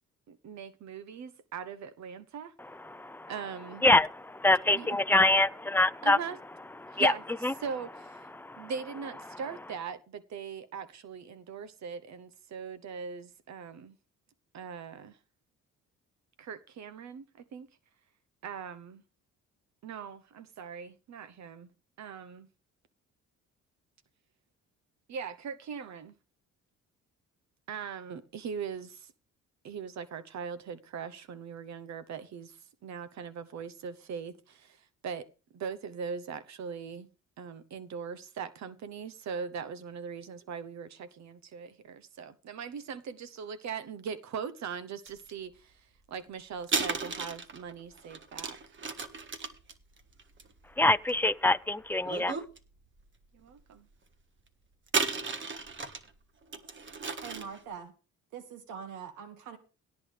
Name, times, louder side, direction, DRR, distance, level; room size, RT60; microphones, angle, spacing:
voice 1, 0.3-2.5 3.3-3.8 4.7-4.9 6.0-6.4 6.9-7.2 7.6-8.2 8.6-14.0 14.5-15.2 16.4-17.2 17.5-17.7 18.4-19.0 19.8-21.7 22.0-22.5 25.1-26.1 27.7-29.1 29.6-35.3 35.5-37.1 37.4-45.8 46.1-48.6 53.3-53.9, right 6 dB, 65° right, 0.9 m, -40 dB
voice 2, 2.9-3.3 3.8-6.2 6.8-7.1 7.4-7.5 8.4-8.7 50.8-52.3, left 2 dB, 5° left, 0.5 m, -25 dB
sound 1, 45.1-45.3 46.6-51.4 52.0-52.6 53.0-53.1 54.9-56.1 56.5-57.6, right 4 dB, 40° right, 1.5 m, -34 dB
voice 3, 57.2-57.9 58.3-59.6, right 7 dB, 85° right, 1.9 m, -43 dB
17.5 x 8.4 x 3.3 m
cardioid pair, 90°, 30 cm